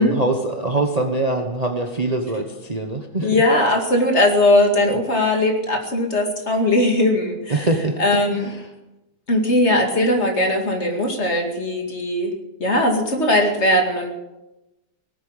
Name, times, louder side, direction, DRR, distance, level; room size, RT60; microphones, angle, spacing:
voice 1, 0.0-3.4 7.5-8.6, right 2 dB, 25° right, 4 dB, 1.2 m, -23 dB
voice 2, 3.2-7.7 8.0-8.5 9.3-12.3 12.6-14.1, left 1 dB, 45° left, 3 dB, 2.6 m, -19 dB
18.5 x 8.6 x 8.9 m, 0.99 s
omnidirectional pair, 1.7 m